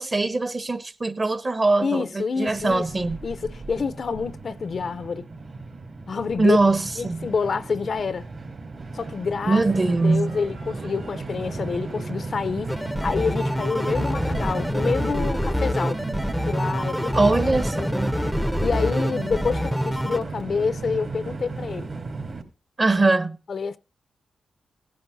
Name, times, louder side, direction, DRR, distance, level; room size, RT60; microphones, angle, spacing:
voice 1, 0.0-3.2 6.4-7.3 9.5-10.4 17.1-18.1 22.8-23.4, right 3 dB, 35° right, 1.3 m, -22 dB
voice 2, 1.8-5.3 6.1-6.6 7.0-8.3 8.9-9.6 10.0-16.0 16.5-17.3 17.8-17.9 18.6-21.9 23.5-23.8, left 5 dB, 55° left, 0.6 m, -27 dB
Train, 2.5-22.4, right 3 dB, 50° right, 3.3 m, -35 dB
sound 1, 9.6-20.7, right 3 dB, 70° right, 3.7 m, -47 dB
sound 2, 12.7-20.2, equal, ahead, 0.7 m, -26 dB
17.0 x 10.0 x 2.6 m
cardioid pair, 85°, 0 cm